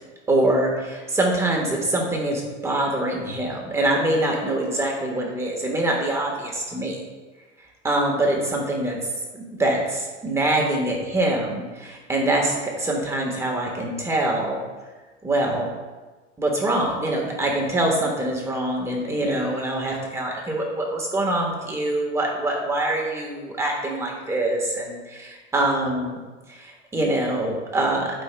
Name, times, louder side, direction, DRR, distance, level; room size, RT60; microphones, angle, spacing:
voice 1, 0.3-7.0 7.8-9.0 9.3-14.6 15.2-15.7 16.4-26.2 26.5-28.0, right 1 dB, 5° right, -1 dB, 1.3 m, -24 dB
12.5 x 5.4 x 2.2 m, 1.3 s
supercardioid pair, 145°, 38 cm